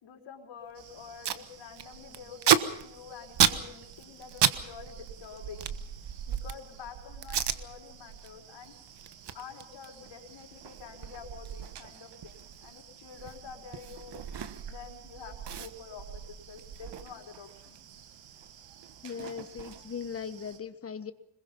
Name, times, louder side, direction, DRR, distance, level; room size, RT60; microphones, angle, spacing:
voice 1, 0.0-5.7 6.3-8.8 9.3-14.2 14.7-17.8, left 6 dB, 65° left, 3 dB, 4.8 m, -48 dB
Packing tape duct tape, 0.7-0.8 1.0-1.4 1.7-4.6 4.9-6.7 7.2-7.6 8.1-8.3 8.6-14.9 15.1-15.2 15.4-17.8 18.1-20.1, right 9 dB, 55° right, 1.4 m, -32 dB
sound 1, 0.7-20.6, right 8 dB, 90° right, 2.6 m, -46 dB
voice 2, 19.0-21.1, left 6 dB, 30° left, 12 dB, 1.4 m, -39 dB
26.0 x 22.0 x 5.5 m, 0.77 s
cardioid pair, 145°, 48 cm